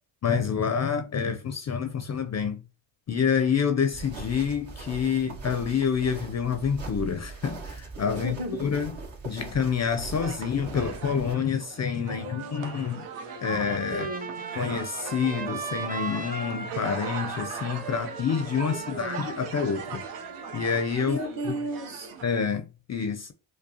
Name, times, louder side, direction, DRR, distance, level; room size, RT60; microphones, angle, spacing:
voice 1, 0.2-2.6 3.1-8.3 8.6-8.9 9.2-13.1 13.4-14.1 14.6-20.0 20.5-21.2 22.2-23.3, left 6 dB, 35° left, 0.4 m, -27 dB
sound 1, 3.9-11.3, right 3 dB, 65° right, 1.6 m, -40 dB
voice 2, 8.1-8.8 12.0-12.7 13.8-14.5 18.6-19.3 21.0-22.1, right 1 dB, 45° right, 1.2 m, -35 dB
sound 2, 10.2-22.2, right 6 dB, 80° right, 0.7 m, -39 dB
Trumpet, 13.3-20.9, right 3 dB, 20° right, 0.7 m, -40 dB
5.0 x 2.1 x 2.8 m
cardioid pair, 70°, 49 cm